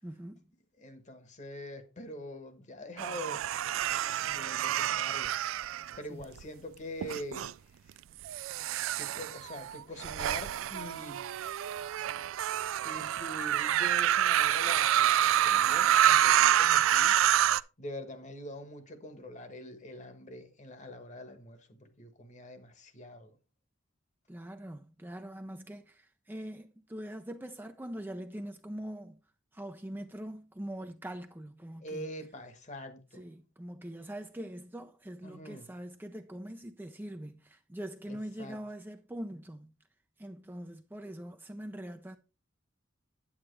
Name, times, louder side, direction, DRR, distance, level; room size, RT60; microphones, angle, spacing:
voice 1, 0.0-0.4 6.1-6.3 24.3-29.2 29.5-32.1 33.1-39.7 40.2-42.2, right 1 dB, 10° right, 0.5 m, -43 dB
voice 2, 0.8-3.4 4.2-5.3 6.0-7.8 9.0-11.3 12.8-17.2 17.8-23.3 31.8-33.3 35.2-35.7 38.1-38.6, left 1 dB, 40° left, 1.3 m, -44 dB
sound 1, 3.0-6.4 7.0-7.5 8.2-17.6, right 11 dB, 90° right, 0.3 m, -27 dB
8.7 x 8.6 x 3.2 m
head